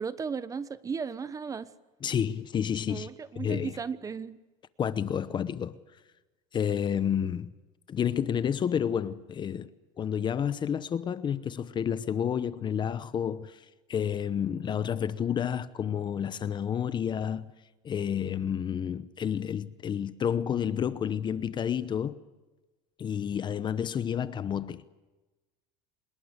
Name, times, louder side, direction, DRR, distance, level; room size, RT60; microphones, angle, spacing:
voice 1, 0.0-1.7 2.9-4.4, right 6 dB, 20° right, 1.1 m, -35 dB
voice 2, 2.0-3.1 3.3-3.8 4.8-5.8 6.5-7.5 7.9-9.7 10.0-17.5 17.8-22.2 23.0-24.8, left 8 dB, 25° left, 0.9 m, -30 dB
27.0 x 21.0 x 8.2 m
cardioid pair, 140°, 17 cm